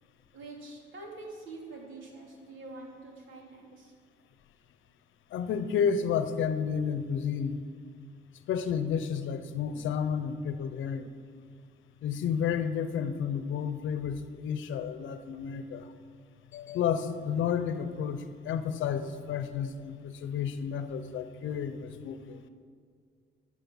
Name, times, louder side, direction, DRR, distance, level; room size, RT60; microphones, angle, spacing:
voice 1, 0.3-3.9, right 2 dB, 75° right, -1 dB, 2.8 m, -45 dB
voice 2, 5.3-7.7 8.5-11.1 12.0-15.9 16.5-22.4, left 7 dB, 75° left, 11 dB, 0.8 m, -31 dB
13.5 x 6.5 x 7.2 m, 2.1 s
cardioid pair, 90°, 20 cm